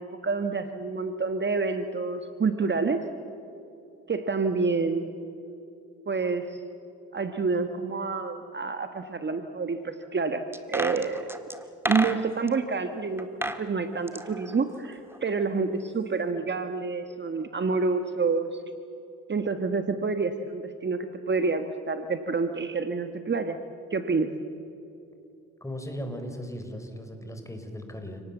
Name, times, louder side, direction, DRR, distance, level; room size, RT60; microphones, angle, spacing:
voice 1, 0.0-3.0 4.1-5.1 6.1-6.6 7.1-11.3 11.9-18.6 19.3-23.6 23.9-24.3, right 4 dB, 35° right, 8 dB, 1.5 m, -28 dB
sound 1, 10.5-12.5 13.2-13.6 13.9-15.3 15.6-15.7, right 1 dB, 5° right, 2.0 m, -32 dB
voice 2, 25.6-28.2, equal, 10° left, 5 dB, 4.9 m, -37 dB
29.0 x 19.0 x 7.3 m, 2.7 s
supercardioid pair, 70°, 32 cm